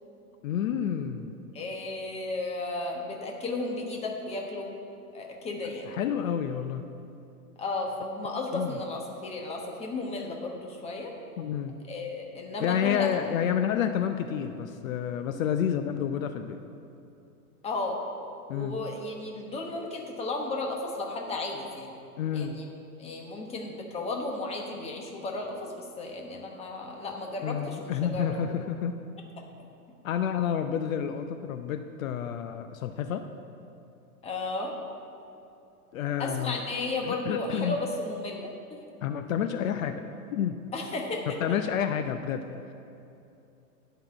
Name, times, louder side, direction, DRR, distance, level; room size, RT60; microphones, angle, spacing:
voice 1, 0.4-1.3 5.8-6.9 8.5-8.8 11.4-11.8 12.6-16.6 18.5-18.8 22.2-22.6 27.4-29.0 30.0-33.2 35.9-36.6 37.0-37.8 39.0-40.0 40.3-40.6 41.3-42.4, left 8 dB, 60° left, 8 dB, 0.7 m, -29 dB
voice 2, 1.5-4.7 5.1-5.9 7.6-11.1 11.9-13.1 17.6-18.0 18.5-21.9 22.3-22.7 23.0-28.4 34.2-34.7 36.2-38.8 40.7-41.4, left 2 dB, 15° left, 1 dB, 1.1 m, -34 dB
11.0 x 5.6 x 7.8 m, 2.7 s
hypercardioid pair, 140°, 46 cm